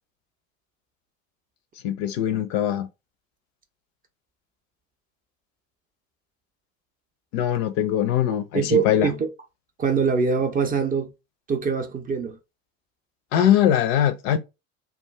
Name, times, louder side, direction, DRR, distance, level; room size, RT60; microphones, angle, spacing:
voice 1, 1.8-2.9 7.3-9.1 13.3-14.4, left 10 dB, 50° left, 0.4 m, -21 dB
voice 2, 8.5-9.3 9.8-11.1 11.5-12.4, right 5 dB, 20° right, 0.5 m, -23 dB
2.4 x 2.2 x 3.2 m
figure-of-eight pair, 65°, 42 cm